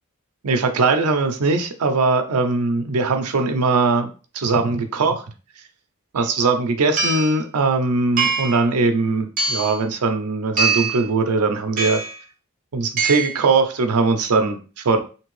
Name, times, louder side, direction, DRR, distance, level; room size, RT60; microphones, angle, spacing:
voice 1, 0.4-4.1 4.3-5.2 6.1-12.0 12.7-15.0, right 3 dB, 85° right, 6 dB, 0.5 m, -20 dB
sound 1, 6.2-6.3 7.0-7.4 8.2-8.6 9.4-9.8 10.6-11.0 11.8-12.2 13.0-13.4, right 4 dB, 40° right, 0.7 m, -23 dB
2.8 x 2.6 x 3.1 m, 0.35 s
head